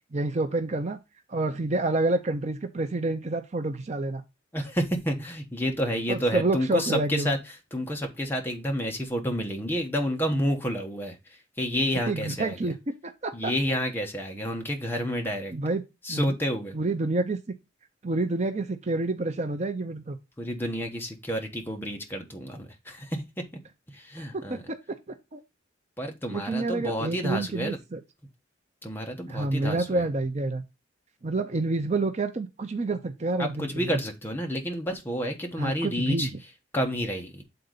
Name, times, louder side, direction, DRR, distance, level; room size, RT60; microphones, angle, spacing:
voice 1, 0.1-1.0 1.3-4.2 6.1-7.4 12.1-12.7 13.0-13.5 15.5-15.8 16.1-16.3 16.7-17.4 18.0-20.2 24.3-25.0 25.3-25.4 26.3-28.0 29.3-30.6 31.2-34.0 35.6-36.3, right 2 dB, 35° right, 7 dB, 0.6 m, -28 dB
voice 2, 4.5-7.4 7.7-12.7 13.3-15.5 16.0-16.8 20.4-23.4 23.9-24.6 26.0-27.8 28.8-30.0 33.4-36.3 36.7-37.4, equal, 10° left, 2 dB, 1.1 m, -30 dB
7.8 x 3.9 x 3.9 m, 0.25 s
head